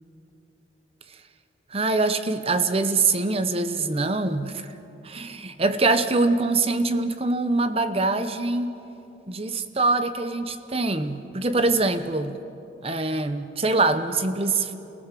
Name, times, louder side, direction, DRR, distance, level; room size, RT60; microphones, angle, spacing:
voice 1, 1.7-4.7 5.0-8.7 9.3-12.4 12.8-14.7, right 3 dB, 30° right, 10 dB, 0.9 m, -24 dB
28.5 x 17.0 x 7.6 m, 3.0 s
head